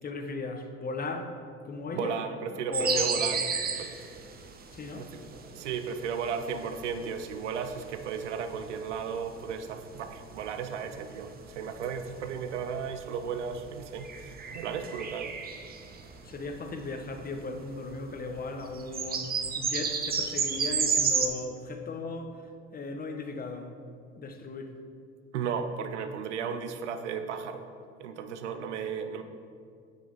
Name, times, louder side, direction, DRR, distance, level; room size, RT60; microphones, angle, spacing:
voice 1, 0.0-1.3 1.6-2.2 2.7-3.2 4.7-5.1 16.2-22.4 22.7-23.8 24.2-24.8, left 3 dB, 25° left, 0.7 m, -36 dB
voice 2, 1.9-3.4 3.7-3.9 5.0-5.1 5.5-15.3 25.3-27.7 28.0-29.2, right 6 dB, 90° right, 0.5 m, -35 dB
sound 1, 2.7-17.6 18.0-18.1 18.3-21.3, right 6 dB, 25° right, 0.7 m, -32 dB
9.3 x 3.5 x 3.8 m
hypercardioid pair, 70°, 34 cm